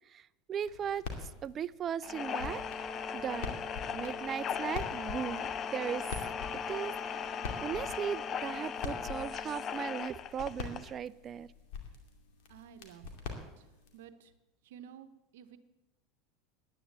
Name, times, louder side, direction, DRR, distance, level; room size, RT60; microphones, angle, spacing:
voice 1, 0.5-1.0 1.4-2.6 3.1-3.5 3.9-6.0 6.7-11.5, right 8 dB, 35° right, 19 dB, 0.4 m, -37 dB
sound 1, 0.6-14.0, left 5 dB, 70° left, 2.4 m, -45 dB
sound 2, 2.0-11.0, left 7 dB, 40° left, 0.6 m, -38 dB
Brass instrument, 2.1-10.0, equal, 15° left, 1.4 m, -47 dB
voice 2, 12.5-14.3 14.6-15.6, right 8 dB, 75° right, 10 dB, 0.9 m, -53 dB
10.0 x 10.0 x 8.1 m, 0.97 s
hypercardioid pair, 90°, 0 cm